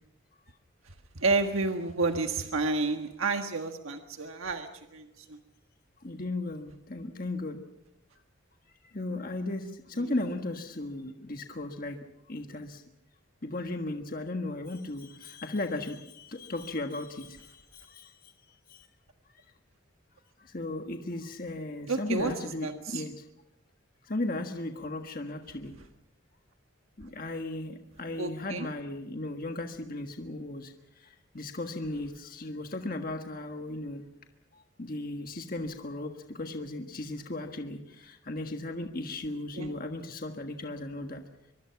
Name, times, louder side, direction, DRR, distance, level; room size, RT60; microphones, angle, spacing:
voice 1, 1.2-5.4 10.0-10.1 21.9-22.3 22.6-23.0 28.2-28.7 39.5-39.7, right 3 dB, 90° right, 5 dB, 1.6 m, -30 dB
voice 2, 6.0-7.6 8.9-12.0 12.3-12.8 13.4-18.3 18.7-18.9 20.4-23.2 24.0-25.7 27.0-34.0 34.5-41.2, left 2 dB, 45° left, 5 dB, 1.5 m, -36 dB
24.0 x 23.5 x 5.9 m, 0.85 s
head